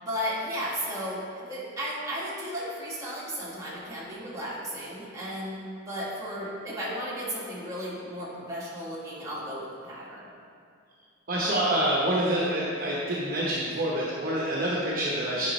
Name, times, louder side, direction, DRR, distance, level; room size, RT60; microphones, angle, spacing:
voice 1, 0.0-10.2, equal, 15° right, -8 dB, 1.7 m, -34 dB
voice 2, 11.3-15.5, right 1 dB, 45° right, -5 dB, 0.9 m, -27 dB
9.5 x 5.0 x 3.2 m, 2.3 s
head